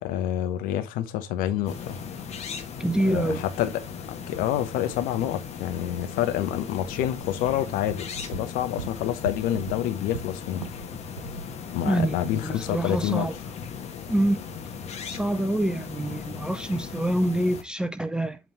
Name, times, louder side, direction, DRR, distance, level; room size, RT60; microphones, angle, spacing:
voice 1, 0.0-2.0 3.0-3.7 4.1-10.7 11.7-13.3, left 12 dB, 55° left, 1.0 m, -28 dB
sound 1, 1.7-17.6, left 6 dB, 35° left, 1.4 m, -38 dB
voice 2, 2.8-3.4 11.9-13.3 14.1-14.4 15.1-18.4, right 1 dB, 5° right, 0.6 m, -26 dB
sound 2, 7.0-10.9 11.2-11.5, right 5 dB, 85° right, 0.9 m, -40 dB
8.1 x 3.6 x 4.6 m
figure-of-eight pair, 65°, 18 cm